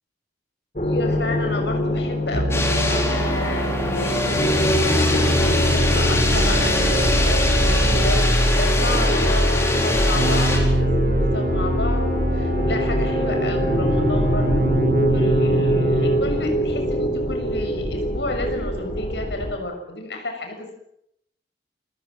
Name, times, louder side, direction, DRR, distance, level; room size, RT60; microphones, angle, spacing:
voice 1, 0.8-4.3 4.7-14.7 15.1-20.7, left 2 dB, 75° left, 4 dB, 6.5 m, -31 dB
sound 1, 0.8-19.5, equal, 40° left, 4.4 m, -22 dB
sound 2, 2.3-8.3 10.1-16.3, right 2 dB, 50° right, 1.4 m, -26 dB
sound 3, 2.5-10.6, left 2 dB, 15° left, 4.5 m, -24 dB
28.0 x 16.5 x 7.7 m, 0.77 s
head